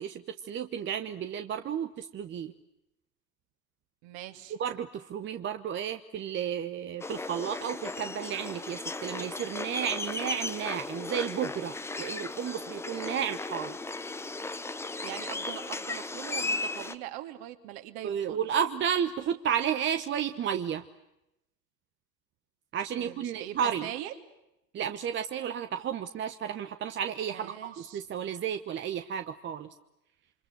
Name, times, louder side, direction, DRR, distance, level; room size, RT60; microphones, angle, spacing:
voice 1, 0.0-2.5 4.6-13.8 18.0-20.8 22.7-23.9 24.7-29.7, right 8 dB, 25° right, 9 dB, 1.1 m, -32 dB
voice 2, 4.0-4.6 14.9-18.4 23.0-24.2 27.3-28.0, right 13 dB, 45° right, 7 dB, 3.1 m, -42 dB
sound 1, 7.0-17.0, left 2 dB, 5° left, 0.9 m, -36 dB
28.5 x 25.0 x 7.9 m, 0.88 s
hypercardioid pair, 110°, 50 cm